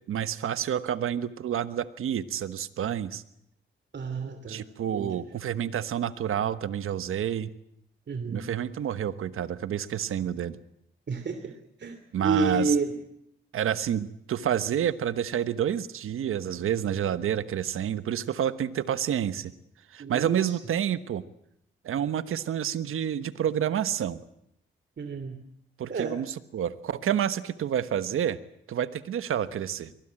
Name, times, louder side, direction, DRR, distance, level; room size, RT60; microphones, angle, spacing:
voice 1, 0.1-3.2 4.5-7.5 8.3-10.6 12.1-12.8 13.5-19.5 19.9-21.2 21.8-24.2 25.8-28.4 28.7-29.9, right 9 dB, 85° right, 13 dB, 1.3 m, -29 dB
voice 2, 3.9-4.6 4.9-5.2 8.1-8.5 11.1-11.5 11.8-12.0 12.2-12.9 20.0-20.4 25.0-25.4 25.9-26.1, right 4 dB, 55° right, 8 dB, 2.9 m, -29 dB
23.0 x 19.0 x 8.9 m, 0.78 s
cardioid pair, 60°, 21 cm